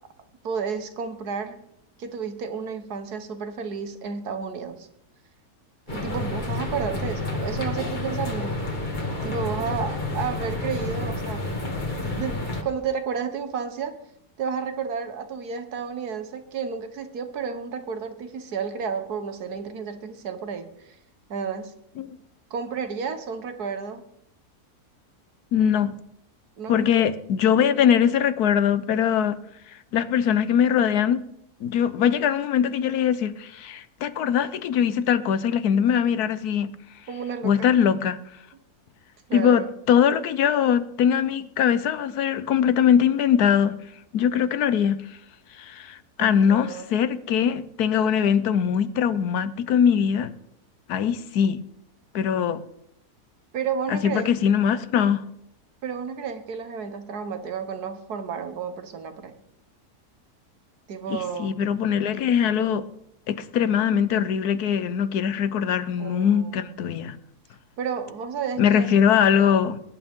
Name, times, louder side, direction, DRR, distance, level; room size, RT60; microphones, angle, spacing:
voice 1, 0.4-1.6 2.0-4.9 5.9-8.8 9.2-11.5 12.0-14.0 14.4-20.9 21.3-21.7 22.5-24.0 26.6-26.9 37.1-37.8 39.3-39.7 46.2-46.9 53.5-54.3 55.8-59.3 60.9-61.5 66.0-66.7 67.8-69.1, right 6 dB, 75° right, 1.8 m, -32 dB
sound 1, 5.9-12.6, left 2 dB, 30° left, 1.9 m, -29 dB
voice 2, 25.5-26.0 26.7-29.4 29.9-31.2 31.6-36.7 37.4-38.2 39.3-43.7 44.1-45.0 45.6-50.3 50.9-51.6 52.1-52.6 53.9-55.2 61.1-62.8 63.3-67.2 68.6-69.8, left 8 dB, 75° left, 1.3 m, -22 dB
20.0 x 11.5 x 3.7 m
omnidirectional pair, 1.7 m